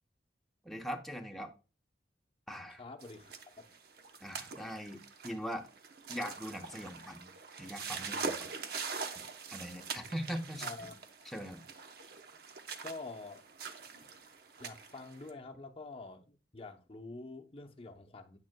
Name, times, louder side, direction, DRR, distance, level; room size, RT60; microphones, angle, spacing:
voice 1, 0.6-1.5 2.5-2.8 4.2-5.7 6.1-7.3 7.6-8.5 9.5-11.0 11.2-11.6, equal, ahead, 0.9 m, -41 dB
voice 2, 2.7-3.7 10.6-10.9 12.8-13.4 14.6-18.4, left 3 dB, 30° left, 0.8 m, -47 dB
sound 1, 3.0-15.3, right 5 dB, 60° right, 0.9 m, -43 dB
9.7 x 9.1 x 2.2 m
head